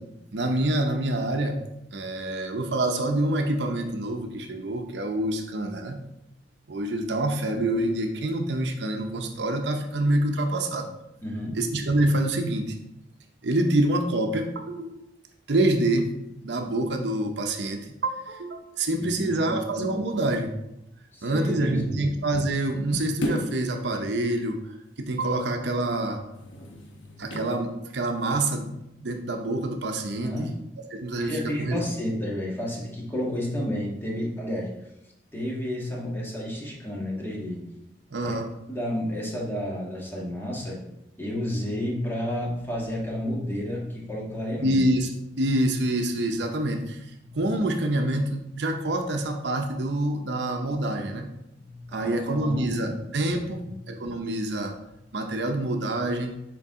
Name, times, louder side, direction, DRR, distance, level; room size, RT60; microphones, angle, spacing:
voice 1, 0.3-1.6 1.9-6.0 6.7-10.9 11.5-12.8 13.4-15.0 15.5-16.1 16.4-20.5 21.2-26.2 27.2-28.7 29.0-30.3 30.9-31.8 38.1-38.5 44.6-45.1 45.4-47.1 47.3-51.3 51.9-53.6 53.9-54.8 55.1-56.3, right 1 dB, 65° right, 4 dB, 0.7 m, -26 dB
voice 2, 11.2-11.6 18.8-19.6 21.1-22.0 30.1-30.6 31.2-34.7 35.3-37.7 38.2-38.4 38.7-40.8 41.2-44.8 47.2-47.4 51.5-53.0 53.6-53.7, equal, 10° left, -3 dB, 1.5 m, -31 dB
sound 1, 23.2-23.7 26.3-27.6 28.1-28.3, left 1 dB, 90° left, 1.1 m, -33 dB
7.0 x 4.6 x 3.6 m, 0.85 s
head